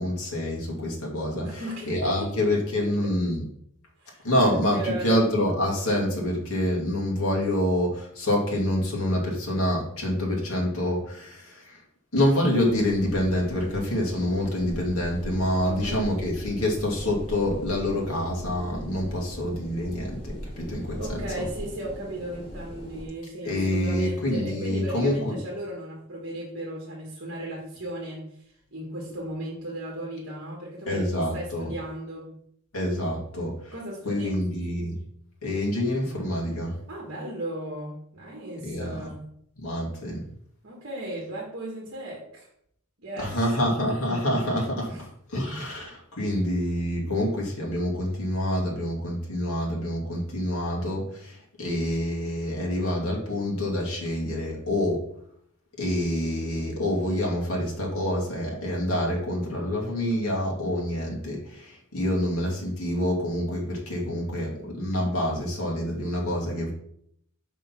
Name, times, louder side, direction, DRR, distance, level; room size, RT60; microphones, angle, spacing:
voice 1, 0.0-3.5 4.2-11.8 12.1-21.5 23.4-25.4 30.9-31.7 32.7-33.7 34.0-35.0 35.4-36.8 38.6-39.1 39.6-40.3 43.2-55.1 55.8-66.7, left 1 dB, 90° left, -2 dB, 2.3 m, -27 dB
voice 2, 1.4-2.3 2.8-3.1 4.0-5.2 15.6-16.1 21.0-28.2 28.7-32.3 33.7-34.5 36.9-39.2 40.6-42.5 43.0-43.4 44.8-45.0, right 1 dB, 55° right, -3 dB, 1.7 m, -36 dB
sound 1, 12.6-23.1, equal, 30° left, 1.9 m, -39 dB
5.4 x 5.2 x 5.8 m, 0.69 s
head